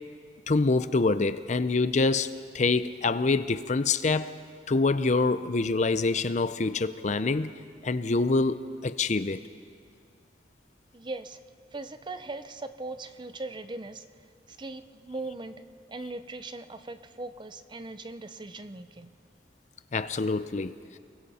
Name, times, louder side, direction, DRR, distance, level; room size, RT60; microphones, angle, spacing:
voice 1, 0.5-4.4 4.7-7.5 7.8-9.4 19.9-21.0, left 3 dB, 40° left, 0.5 m, -26 dB
voice 2, 10.9-11.4 11.7-14.0 14.5-19.1, right 2 dB, 25° right, 0.6 m, -39 dB
29.5 x 21.5 x 4.3 m
head